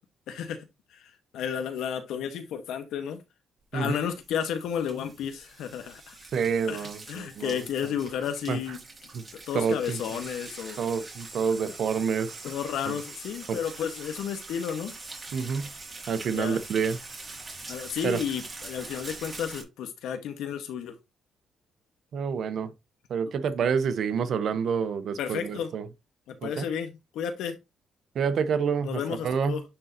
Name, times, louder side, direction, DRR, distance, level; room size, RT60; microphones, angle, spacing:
voice 1, 0.3-0.7 1.3-3.2 3.7-6.1 6.6-8.8 9.5-10.8 12.4-14.9 16.3-16.6 17.7-21.0 25.2-25.7 26.3-27.6 28.8-29.6, left 8 dB, 85° left, 1.3 m, -32 dB
sound 1, 3.9-19.6, right 3 dB, 30° right, 2.6 m, -44 dB
voice 2, 6.3-7.9 8.5-8.8 9.1-9.2 9.5-10.2 10.8-12.4 12.9-13.0 13.5-13.6 15.3-15.7 16.1-17.0 18.0-18.2 22.1-22.7 23.1-25.9 26.4-26.7 28.1-29.6, right 6 dB, 65° right, 0.8 m, -28 dB
10.0 x 3.8 x 2.8 m
cardioid pair, 90°, 0 cm